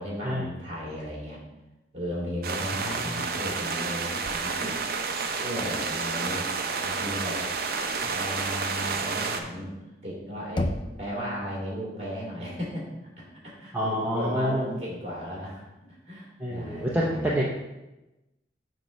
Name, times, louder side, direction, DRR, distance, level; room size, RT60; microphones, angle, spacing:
voice 1, 0.0-1.4 1.9-4.7 5.4-6.5 6.8-7.4 8.0-10.7 11.0-13.1 13.4-15.6 15.9-17.5, equal, 35° right, -5 dB, 2.6 m, -35 dB
sound 1, 2.4-9.4, right 4 dB, 55° right, 0.6 m, -30 dB
Knock, 10.6-11.5, left 1 dB, 25° left, 0.4 m, -31 dB
voice 2, 13.7-14.8 16.4-17.5, equal, 10° right, -5 dB, 0.7 m, -27 dB
7.5 x 3.2 x 5.7 m, 1.0 s
head